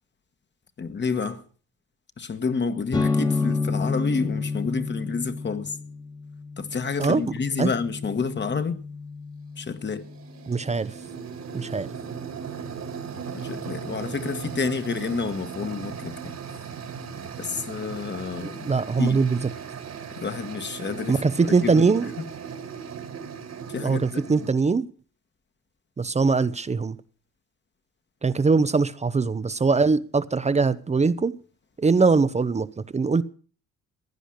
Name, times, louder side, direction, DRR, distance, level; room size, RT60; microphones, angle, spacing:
voice 1, 0.8-1.4 2.2-5.8 6.6-8.8 9.6-10.1 13.2-16.3 17.4-19.2 20.1-21.8 22.2-22.3 23.7-24.5, left 5 dB, 35° left, 1.4 m, -29 dB
sound 1, 2.9-10.5, left 4 dB, 15° left, 1.3 m, -30 dB
sound 2, 7.0-7.3 9.6-24.5, right 6 dB, 60° right, 2.2 m, -37 dB
voice 2, 10.5-11.0 11.5-11.9 18.6-19.5 21.1-22.1 23.8-24.9 26.0-27.0 28.2-31.4 31.8-33.2, right 4 dB, 25° right, 0.7 m, -22 dB
16.0 x 10.0 x 6.4 m
cardioid pair, 90°, 30 cm